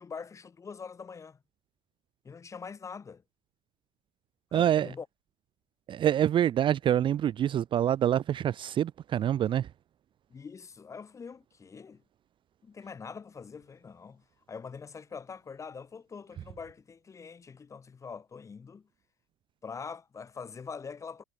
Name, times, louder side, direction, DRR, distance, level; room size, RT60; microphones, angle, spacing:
voice 1, 0.0-1.4 2.2-3.2 4.5-5.1 10.3-12.0 12.6-18.9 19.6-21.2, left 5 dB, 20° left, 5.6 m, -44 dB
voice 2, 4.5-4.9 5.9-9.7, right 10 dB, 30° right, 1.1 m, -26 dB
cardioid pair, 150°, 16 cm